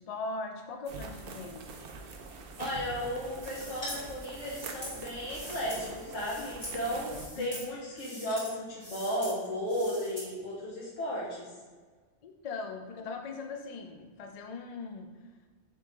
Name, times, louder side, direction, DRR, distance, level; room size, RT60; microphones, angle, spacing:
voice 1, 0.0-1.7 7.3-7.7 12.2-15.2, left 3 dB, 70° left, 4 dB, 0.3 m, -40 dB
sound 1, 0.9-7.3, right 4 dB, 60° right, 0.6 m, -44 dB
voice 2, 2.6-11.5, equal, 85° left, -6 dB, 1.3 m, -34 dB
sound 2, 3.4-4.0 4.4-5.8 6.1-6.8 7.1-7.7 7.9-8.5 8.8-9.4 9.7-10.3, equal, 25° left, 1.4 m, -43 dB
4.7 x 3.1 x 3.5 m, 1.5 s
omnidirectional pair, 1.3 m